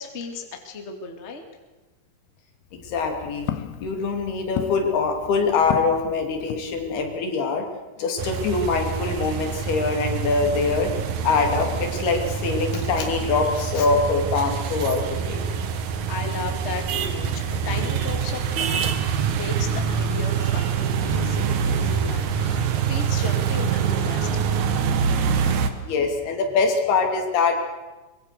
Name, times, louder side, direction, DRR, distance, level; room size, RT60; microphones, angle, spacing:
voice 1, 0.0-1.4 16.0-19.0 19.4-24.4, left 4 dB, 40° left, 5 dB, 0.9 m, -35 dB
Walk footsteps, 2.6-7.2, left 12 dB, 75° left, 2.7 m, -35 dB
voice 2, 2.7-3.5 3.8-7.7 8.0-10.9 11.2-15.4 24.9-27.6, left 4 dB, 60° left, 4 dB, 4.4 m, -24 dB
sound 1, 8.2-25.7, right 7 dB, 75° right, 1.7 m, -25 dB
23.0 x 22.5 x 6.7 m, 1.2 s
omnidirectional pair, 5.6 m